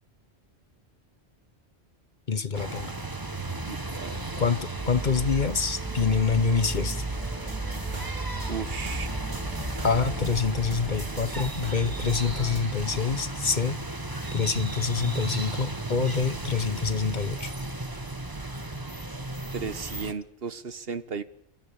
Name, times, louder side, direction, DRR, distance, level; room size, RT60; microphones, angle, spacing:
voice 1, 2.3-2.9 4.4-7.0 9.8-13.8 14.3-17.5, left 5 dB, 45° left, 14 dB, 1.1 m, -26 dB
sound 1, 2.5-20.1, right 2 dB, 20° right, 1.3 m, -35 dB
voice 2, 3.7-4.2 7.9-8.1 8.5-9.1 19.5-21.2, right 5 dB, 65° right, 13 dB, 1.3 m, -35 dB
sound 2, 4.8-12.2, right 2 dB, 5° right, 2.4 m, -37 dB
sound 3, 7.1-12.6, right 2 dB, 45° right, 3.4 m, -39 dB
27.5 x 13.5 x 8.6 m, 0.72 s
omnidirectional pair, 1.1 m